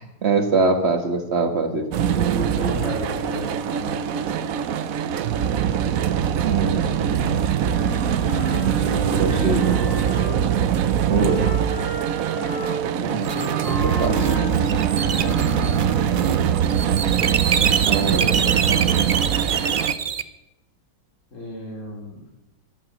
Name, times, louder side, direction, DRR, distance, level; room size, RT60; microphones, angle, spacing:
voice 1, 0.0-1.9 6.4-7.3 9.1-9.9 11.1-11.4 13.0-13.3 13.8-14.3 17.9-18.3, right 3 dB, 40° right, 6 dB, 1.7 m, -23 dB
sound 1, 1.9-19.9, right 9 dB, 65° right, 1.0 m, -22 dB
voice 2, 2.1-4.5 17.9-19.5 21.3-22.2, left 1 dB, 45° left, 0 dB, 3.1 m, -34 dB
Wind instrument woodwind instrument, 7.7-10.6 11.1-16.0, right 1 dB, 15° left, 2.3 m, -32 dB
sound 2, 13.2-20.2, right 7 dB, 85° right, 0.4 m, -25 dB
12.0 x 11.0 x 7.3 m, 0.93 s
omnidirectional pair, 1.8 m